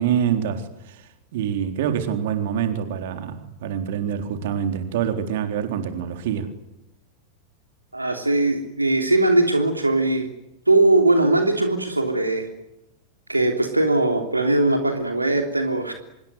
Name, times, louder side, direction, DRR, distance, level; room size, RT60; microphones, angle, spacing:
voice 1, 0.0-6.5, right 8 dB, 55° right, 3.9 m, -26 dB
voice 2, 7.9-10.3 10.7-12.5 13.3-15.9, right 2 dB, 85° right, 3.2 m, -20 dB
26.5 x 23.5 x 9.3 m
figure-of-eight pair, 90°, 0 cm